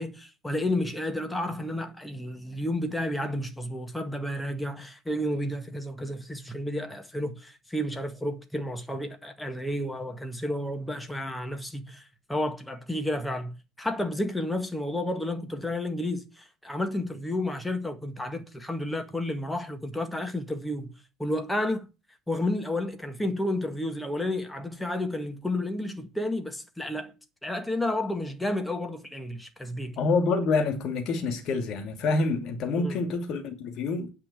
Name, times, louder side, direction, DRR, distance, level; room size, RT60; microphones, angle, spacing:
voice 1, 0.0-21.9 22.3-27.1 27.4-30.0 32.8-33.0, left 1 dB, 5° left, 1.9 m, -31 dB
voice 2, 30.0-34.1, left 3 dB, 45° left, 2.7 m, -27 dB
9.7 x 5.5 x 8.3 m
figure-of-eight pair, 65°, 0 cm